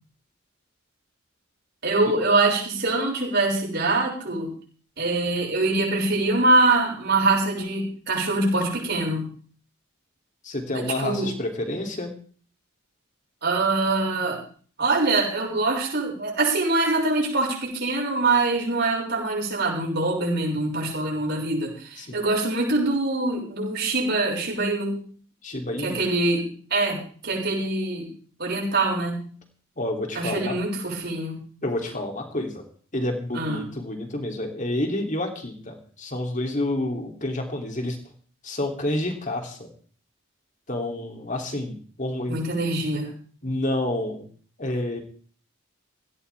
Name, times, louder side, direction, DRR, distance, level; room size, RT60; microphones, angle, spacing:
voice 1, 1.8-4.5 5.0-9.3 10.7-11.3 13.4-14.4 14.8-25.0 25.8-28.1 28.4-29.3 30.1-31.4 33.3-33.7 42.3-43.1, right 2 dB, 55° right, -2 dB, 6.6 m, -24 dB
voice 2, 10.4-12.1 22.0-22.2 25.4-26.1 29.8-30.6 31.6-32.6 32.9-38.0 38.4-39.7 40.7-42.4 43.4-44.3 44.6-45.0, left 1 dB, 40° left, 3 dB, 3.2 m, -29 dB
17.0 x 16.5 x 3.6 m, 0.43 s
head